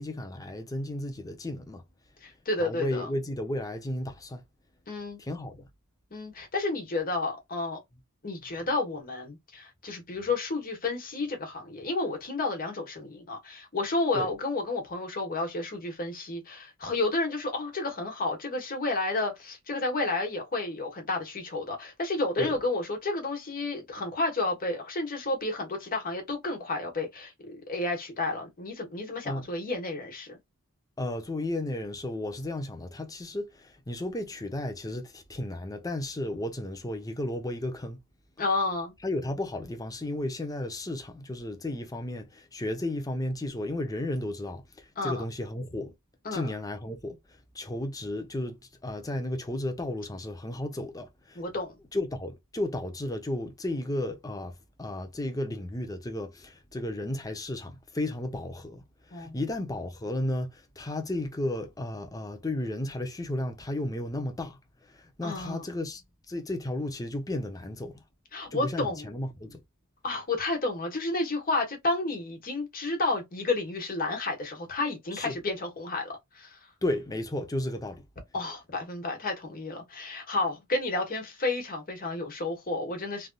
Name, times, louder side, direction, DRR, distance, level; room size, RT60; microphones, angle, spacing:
voice 1, 0.0-1.8 2.6-4.4 5.2-5.7 14.1-14.3 22.4-22.5 29.2-29.5 31.0-38.0 39.0-45.9 46.3-51.4 51.9-66.0 66.3-68.0 68.5-69.6 75.1-75.4 76.8-78.1, left 1 dB, 15° left, 0.6 m, -34 dB
voice 2, 2.2-3.1 4.9-5.2 6.1-7.8 8.2-30.4 38.4-38.9 45.0-45.2 46.2-46.5 51.3-51.7 59.1-59.4 65.2-65.6 68.3-69.1 70.0-76.6 78.3-83.3, left 2 dB, 40° left, 1.2 m, -31 dB
3.3 x 2.6 x 2.3 m
head